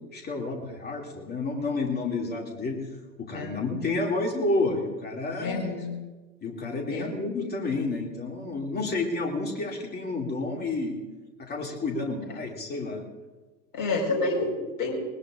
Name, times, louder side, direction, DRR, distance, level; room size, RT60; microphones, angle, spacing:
voice 1, 0.1-2.8 3.2-5.8 6.4-11.0 11.4-13.0, left 3 dB, 20° left, 1 dB, 2.5 m, -30 dB
voice 2, 5.4-5.9 6.9-7.1 13.7-14.9, left 2 dB, 40° left, 0 dB, 4.8 m, -28 dB
20.5 x 20.5 x 2.5 m, 1.2 s
hypercardioid pair, 100°, 50 cm